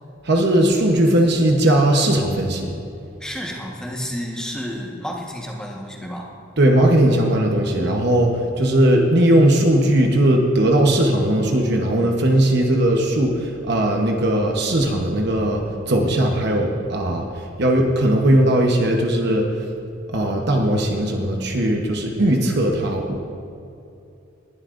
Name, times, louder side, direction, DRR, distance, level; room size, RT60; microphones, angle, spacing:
voice 1, 0.2-2.7 6.6-19.6 20.1-23.2, right 1 dB, 55° right, 1 dB, 1.0 m, -18 dB
voice 2, 3.2-6.3, equal, 5° left, -2 dB, 1.3 m, -31 dB
19.5 x 11.5 x 2.6 m, 2.6 s
head